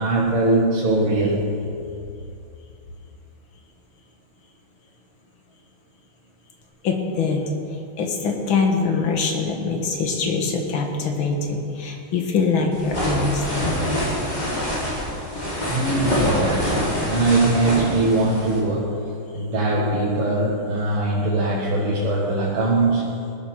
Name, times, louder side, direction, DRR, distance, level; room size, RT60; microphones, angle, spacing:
voice 1, 0.0-1.5 15.7-18.9 19.3-23.3, right 2 dB, 85° right, -5 dB, 2.7 m, -21 dB
voice 2, 6.8-13.8, left 4 dB, 65° left, 2 dB, 2.4 m, -24 dB
sound 1, 12.7-18.6, equal, 20° left, 3.8 m, -25 dB
20.0 x 8.7 x 6.2 m, 2.5 s
omnidirectional pair, 2.4 m